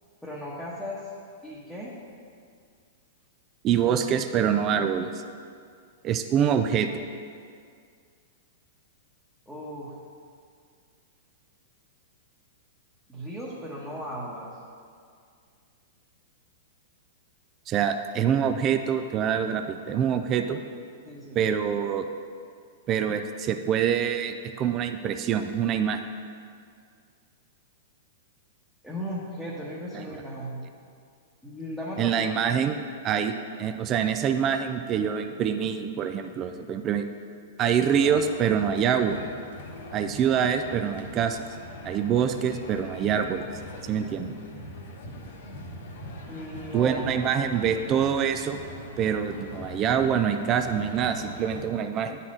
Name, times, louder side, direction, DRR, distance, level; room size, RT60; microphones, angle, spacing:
voice 1, 0.2-1.0 1.4-1.9 9.5-10.0 13.1-14.5 21.0-21.4 28.8-30.7 31.4-32.6 46.3-47.1, equal, ahead, -8 dB, 1.1 m, -36 dB
voice 2, 3.6-5.1 6.0-6.9 17.7-20.6 21.3-22.1 22.9-26.0 29.9-30.1 32.0-32.8 33.0-33.3 33.6-37.1 37.6-39.2 39.9-41.4 41.8-43.5 43.9-44.3 46.7-48.6 49.0-52.2, right 8 dB, 30° right, 7 dB, 0.4 m, -25 dB
sound 1, 37.8-51.6, left 1 dB, 70° left, 1.0 m, -41 dB
9.6 x 4.1 x 3.7 m, 2.2 s
hypercardioid pair, 125°, 0 cm